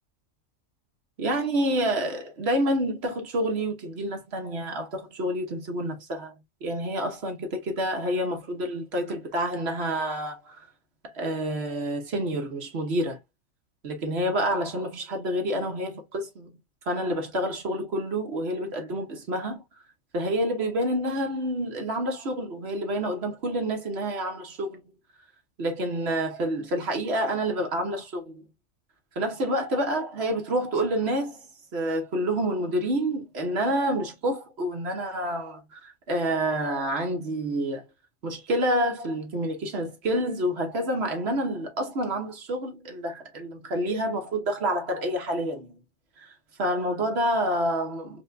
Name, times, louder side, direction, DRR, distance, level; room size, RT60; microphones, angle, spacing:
voice 1, 1.2-6.3 6.6-10.6 11.0-13.2 13.8-16.6 16.9-19.6 20.1-24.8 25.6-28.4 29.2-31.5 31.7-37.8 38.2-45.8 46.2-48.2, right 1 dB, 55° right, 1.1 m, -28 dB
4.7 x 2.2 x 2.5 m
omnidirectional pair, 1.3 m